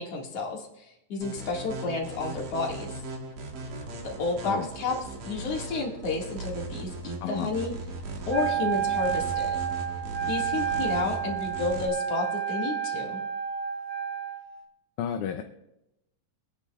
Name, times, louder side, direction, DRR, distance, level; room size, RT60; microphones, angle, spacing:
voice 1, 0.0-2.9 4.0-5.0 5.2-7.7 8.3-9.6 10.3-13.2, left 3 dB, 55° left, -2 dB, 2.9 m, -31 dB
sound 1, 1.2-11.9, right 2 dB, 65° right, 2.9 m, -38 dB
voice 2, 7.2-7.5 15.0-15.4, left 8 dB, 75° left, 5 dB, 2.0 m, -31 dB
Wind instrument woodwind instrument, 8.3-14.5, right 9 dB, 40° right, 1.1 m, -30 dB
25.5 x 9.8 x 2.4 m, 0.89 s
omnidirectional pair, 3.7 m